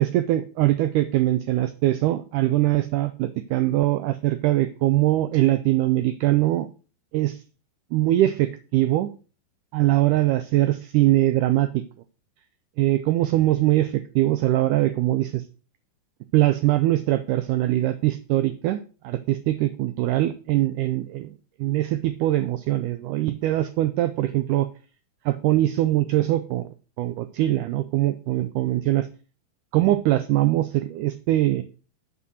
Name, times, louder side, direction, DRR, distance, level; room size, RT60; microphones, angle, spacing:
voice 1, 0.0-6.7 7.1-7.4 7.9-9.1 9.7-11.8 12.8-15.4 16.3-21.3 21.6-24.7 25.3-26.7 27.0-29.1 29.7-31.6, right 15 dB, 90° right, 11 dB, 1.8 m, -22 dB
7.5 x 5.4 x 6.4 m, 0.36 s
omnidirectional pair, 4.2 m